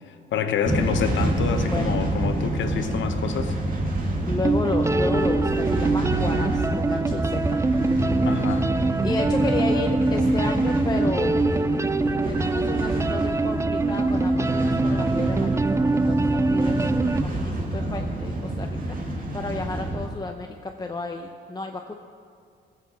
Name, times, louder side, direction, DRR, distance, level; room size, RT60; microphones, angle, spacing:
voice 1, 0.3-3.5 8.2-8.7, left 7 dB, 70° left, 8 dB, 1.0 m, -27 dB
sound 1, 0.6-20.1, right 1 dB, 45° right, 2.1 m, -28 dB
voice 2, 1.7-2.0 4.3-7.6 8.0-8.2 9.0-11.4 12.2-16.9 17.2-21.9, left 3 dB, 20° left, 3 dB, 0.7 m, -32 dB
sound 2, 3.9-4.0 4.4-17.2, right 3 dB, 15° right, 0.4 m, -24 dB
16.5 x 6.0 x 7.3 m, 2.4 s
cardioid pair, 90°, 20 cm